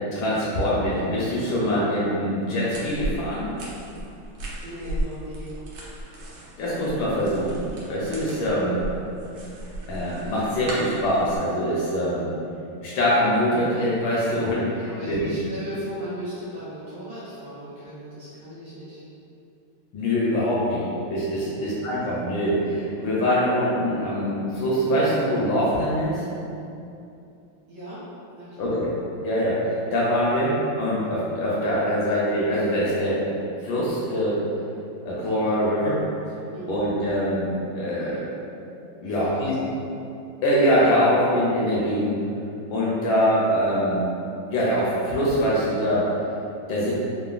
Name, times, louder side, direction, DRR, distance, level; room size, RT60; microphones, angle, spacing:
voice 1, 0.1-3.5 6.6-7.6 7.9-8.8 9.9-12.3 12.8-15.3 19.9-26.2 28.6-28.9 29.2-33.2 33.6-34.4 35.0-36.0 36.7-37.5 37.7-38.2 39.0-39.5 40.4-42.2 42.7-44.0 44.5-46.1 46.7-46.9, equal, 75° left, -7 dB, 1.2 m, -23 dB
sound 1, 2.7-11.4, right 1 dB, 85° right, 1.5 m, -35 dB
voice 2, 4.6-5.5 14.9-19.0 21.4-21.8 27.7-28.8 36.5-36.9 39.0-39.8, equal, 65° right, -11 dB, 0.9 m, -37 dB
3.7 x 2.0 x 2.3 m, 2.7 s
omnidirectional pair, 2.3 m